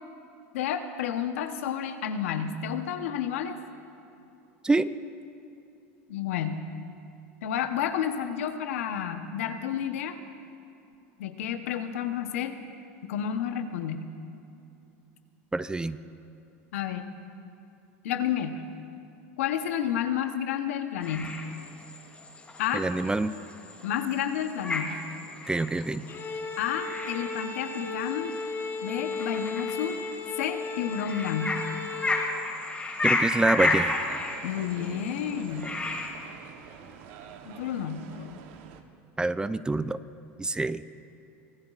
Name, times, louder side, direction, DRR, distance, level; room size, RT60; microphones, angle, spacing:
voice 1, 0.5-3.6 6.1-6.7 7.4-10.2 11.2-12.5 13.0-14.0 16.7-17.1 18.0-18.6 19.4-21.4 22.6-22.8 23.8-25.0 26.6-28.3 28.8-30.0 30.4-31.6 34.4-35.7 37.4-38.4, left 9 dB, 85° left, 8 dB, 0.9 m, -30 dB
voice 2, 15.5-16.0 22.7-23.3 25.5-26.0 33.0-34.0 39.2-40.0 40.4-40.8, right 2 dB, 10° right, 14 dB, 0.4 m, -26 dB
sound 1, 21.0-36.1, left 2 dB, 15° left, 2.6 m, -33 dB
Bowed string instrument, 26.1-32.4, left 4 dB, 35° left, 1.3 m, -35 dB
sound 2, 33.3-38.8, right 7 dB, 70° right, 1.0 m, -46 dB
24.5 x 14.5 x 2.5 m, 2.7 s
supercardioid pair, 100°, 7 cm